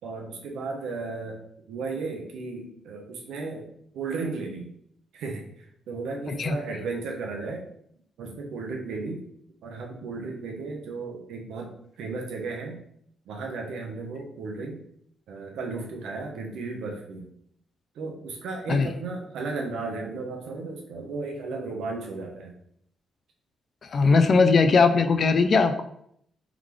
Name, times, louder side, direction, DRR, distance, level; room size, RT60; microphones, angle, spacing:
voice 1, 0.0-1.4 1.7-3.7 3.9-4.7 5.1-7.7 8.2-9.2 9.6-11.7 12.0-12.8 13.3-14.8 15.3-17.3 17.9-22.5, right 3 dB, 80° right, 1 dB, 0.9 m, -34 dB
voice 2, 23.9-25.8, left 4 dB, 35° left, 8 dB, 0.4 m, -19 dB
3.6 x 3.1 x 3.7 m, 0.68 s
cardioid pair, 170°, 0 cm